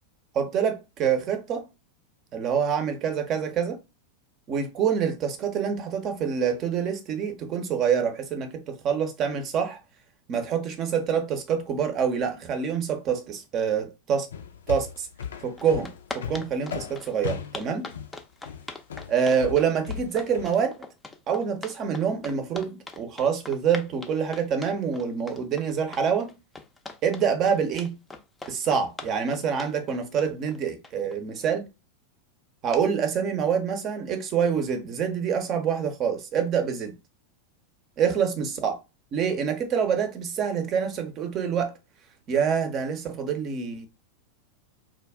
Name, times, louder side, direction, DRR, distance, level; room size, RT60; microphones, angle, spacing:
voice 1, 0.3-1.7 2.3-3.8 4.5-9.8 10.3-14.3 14.7-15.1 15.4-17.9 19.1-20.7 21.3-26.4 27.0-28.0 28.5-31.7 32.6-36.9 38.0-38.8 39.1-41.8 42.3-43.9, right 7 dB, 35° right, 0.7 m, -26 dB
sound 1, 14.3-20.5, left 7 dB, 75° left, 0.4 m, -36 dB
sound 2, 15.2-15.3 15.6-31.2, left 3 dB, 10° left, 0.5 m, -41 dB
2.4 x 2.0 x 3.4 m
figure-of-eight pair, 90°, 0 cm